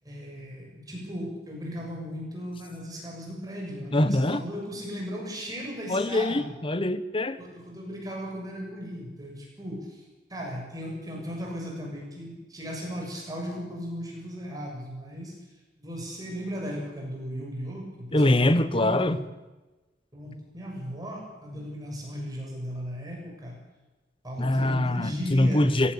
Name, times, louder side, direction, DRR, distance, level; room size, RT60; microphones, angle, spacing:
voice 1, 0.0-6.5 7.4-10.0 10.3-15.3 15.8-19.2 20.1-23.6 24.2-25.8, equal, 20° right, -1 dB, 7.1 m, -36 dB
voice 2, 3.9-4.4 5.9-7.4 18.1-19.2 24.4-25.9, left 1 dB, 30° left, 13 dB, 1.1 m, -23 dB
20.0 x 18.0 x 8.7 m, 1.1 s
head